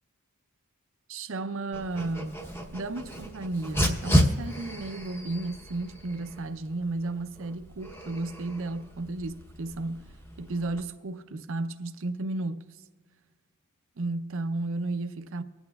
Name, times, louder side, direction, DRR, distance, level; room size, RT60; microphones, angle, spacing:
voice 1, 1.1-2.4 2.7-12.8 14.0-15.4, right 2 dB, 60° right, 0.5 m, -33 dB
Dog, 1.7-10.8, equal, 10° left, 0.8 m, -32 dB
24.5 x 8.8 x 2.3 m
head